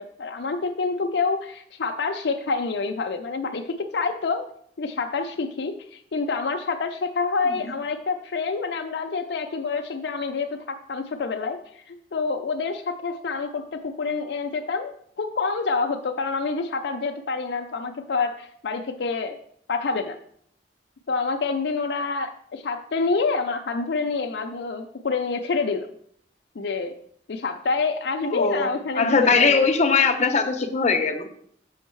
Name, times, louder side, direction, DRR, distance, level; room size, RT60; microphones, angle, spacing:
voice 1, 0.0-4.4 4.8-19.4 19.7-20.2 21.1-25.9 26.6-26.9 27.3-29.7, left 4 dB, 70° left, 3 dB, 0.5 m, -27 dB
voice 2, 28.3-28.7 29.0-31.2, left 4 dB, 40° left, 4 dB, 0.8 m, -20 dB
6.4 x 5.3 x 4.6 m, 0.65 s
head